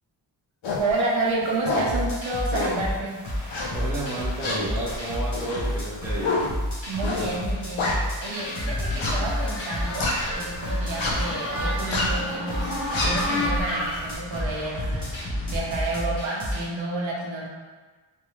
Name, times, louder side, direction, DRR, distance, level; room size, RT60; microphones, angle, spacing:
sound 1, 0.6-0.9 1.4-2.0 2.5-2.9 3.5-4.0 4.4-8.4 8.9-10.5 10.9-11.3 11.7-12.2 12.6-14.1, left 2 dB, 80° left, 0.8 m, -28 dB
voice 1, 0.8-3.2 6.9-7.9 8.2-17.5, right 2 dB, 85° right, -4 dB, 0.8 m, -30 dB
sound 2, 1.9-16.6, equal, 60° left, 1.1 m, -31 dB
voice 2, 3.7-6.4, right 1 dB, 5° right, -7 dB, 0.5 m, -31 dB
sound 3, 8.4-15.7, left 1 dB, 30° left, 0.8 m, -32 dB
3.3 x 2.3 x 3.0 m, 1.3 s
wide cardioid pair, 175°, 46 cm